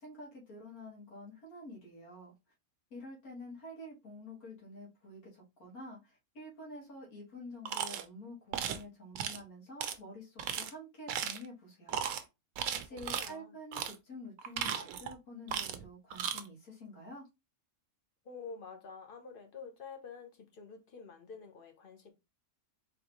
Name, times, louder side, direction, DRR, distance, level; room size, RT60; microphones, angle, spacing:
voice 1, 0.0-2.3 2.9-12.0 12.8-17.3, left 1 dB, 85° left, 2.2 m, -48 dB
sound 1, 7.7-8.0 8.5-8.8 9.2-9.4 9.8-9.9 10.4-10.7 11.1-11.5 11.9-12.2 12.6-13.3 13.7-14.0 14.4-15.1 15.5-15.8 16.1-16.4, right 8 dB, 75° right, 1.0 m, -36 dB
voice 2, 13.1-13.6 18.2-22.1, left 5 dB, 45° left, 0.9 m, -48 dB
4.1 x 3.2 x 2.9 m
omnidirectional pair, 1.5 m